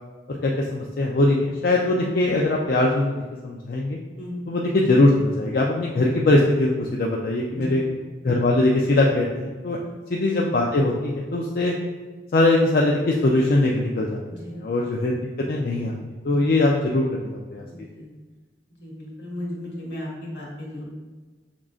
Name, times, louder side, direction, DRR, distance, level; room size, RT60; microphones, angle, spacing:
voice 1, 0.3-3.1 3.4-4.0 4.5-7.8 8.2-9.8 10.1-11.7 12.3-14.2 14.5-15.1 15.5-16.0 16.2-17.6, left 2 dB, 55° left, -2 dB, 0.4 m, -21 dB
voice 2, 4.2-4.5 7.5-7.8 9.8-9.9 14.3-14.6 16.3-16.5 17.7-18.1 18.8-20.8, left 1 dB, 80° left, -4 dB, 1.5 m, -35 dB
6.1 x 3.7 x 2.4 m, 1.3 s
head